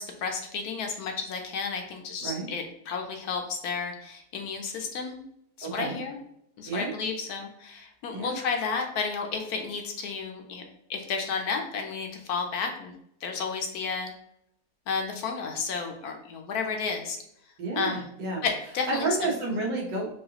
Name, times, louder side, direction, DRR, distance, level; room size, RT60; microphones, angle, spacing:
voice 1, 0.0-5.2 5.6-6.2 6.6-10.6 10.9-12.9 13.2-14.1 14.9-17.2 17.8-18.1 18.4-19.1, left 5 dB, 70° left, 3 dB, 1.0 m, -32 dB
voice 2, 2.2-2.5 5.6-6.0 6.7-6.9 8.1-8.4 17.6-18.4 18.9-20.2, right 3 dB, 85° right, -3 dB, 1.8 m, -30 dB
4.7 x 2.5 x 2.8 m, 0.73 s
omnidirectional pair, 1.8 m